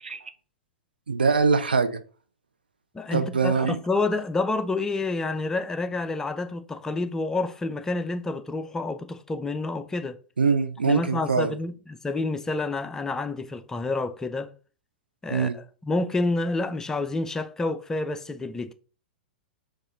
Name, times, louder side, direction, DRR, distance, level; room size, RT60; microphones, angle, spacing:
voice 1, 1.1-2.0 3.1-3.8 10.4-11.5 15.3-15.6, right 5 dB, 75° right, 0.5 m, -23 dB
voice 2, 2.9-10.2 10.8-14.5 15.2-18.7, left 3 dB, 10° left, 0.4 m, -29 dB
4.8 x 2.4 x 4.0 m
figure-of-eight pair, 100°, 5 cm